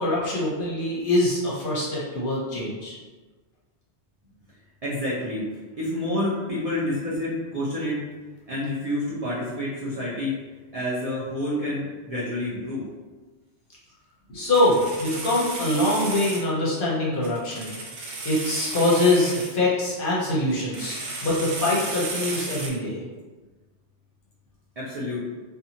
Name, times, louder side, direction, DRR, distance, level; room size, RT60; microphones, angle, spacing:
voice 1, 0.0-3.0 14.3-17.7 18.2-23.0, left 1 dB, 55° left, -5 dB, 0.8 m, -24 dB
voice 2, 4.8-5.4 5.8-8.0 8.5-10.4 10.7-12.8 24.8-25.2, left 1 dB, 45° right, -9 dB, 0.5 m, -28 dB
sound 1, 14.5-16.5 17.2-19.5 20.5-22.7, right 3 dB, 85° right, 0.9 m, -34 dB
2.6 x 2.3 x 2.8 m, 1.3 s
omnidirectional pair, 1.2 m